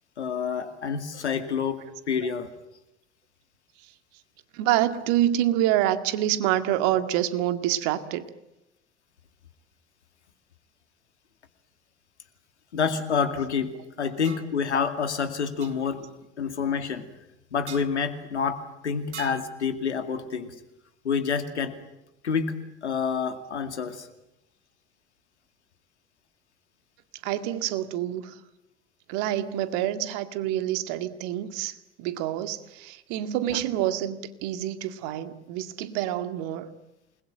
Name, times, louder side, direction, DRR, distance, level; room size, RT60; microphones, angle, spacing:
voice 1, 0.2-2.5 12.7-16.1 16.4-17.0 17.5-20.5 21.0-21.8 22.2-24.1 33.5-33.6, left 6 dB, 85° left, 9 dB, 2.3 m, -28 dB
voice 2, 4.5-8.3 27.2-28.3 29.1-36.7, right 12 dB, 60° right, 11 dB, 2.1 m, -27 dB
sound 1, 14.2-14.5 15.6-15.7 17.7-17.9 19.1-19.5, right 8 dB, 85° right, 1.2 m, -41 dB
28.0 x 21.0 x 9.0 m, 0.90 s
hypercardioid pair, 70°, 33 cm